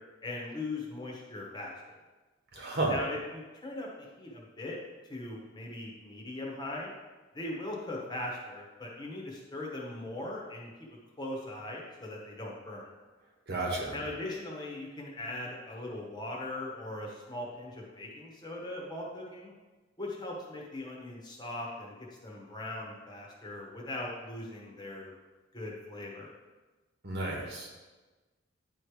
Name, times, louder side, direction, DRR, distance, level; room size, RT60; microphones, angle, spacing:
voice 1, 0.2-2.0 2.9-4.8 5.1-6.9 7.3-10.7 11.2-12.9 13.9-19.5 20.0-22.0 22.2-25.1 25.5-26.3, left 1 dB, 20° left, -2 dB, 1.2 m, -40 dB
voice 2, 2.5-3.0 13.5-14.0 27.0-27.7, right 2 dB, 55° right, -1 dB, 1.5 m, -32 dB
9.5 x 3.3 x 4.7 m, 1.2 s
head